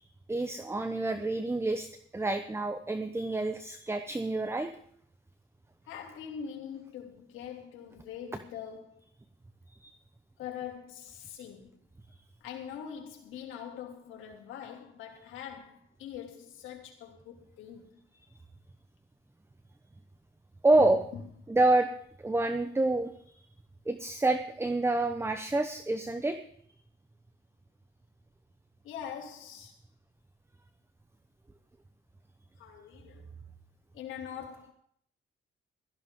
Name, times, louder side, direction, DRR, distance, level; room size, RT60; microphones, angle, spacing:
voice 1, 0.3-1.9 2.1-4.7 9.8-9.9 20.6-21.0 21.5-21.9 22.2-23.1 23.9-26.4, right 2 dB, 10° right, 1.0 m, -27 dB
voice 2, 5.9-9.0 10.4-11.8 12.4-18.0 21.1-21.2 28.8-29.8 32.6-33.3 33.9-34.7, left 8 dB, 90° left, 2.9 m, -43 dB
16.5 x 14.0 x 3.8 m
cardioid pair, 90°, 20 cm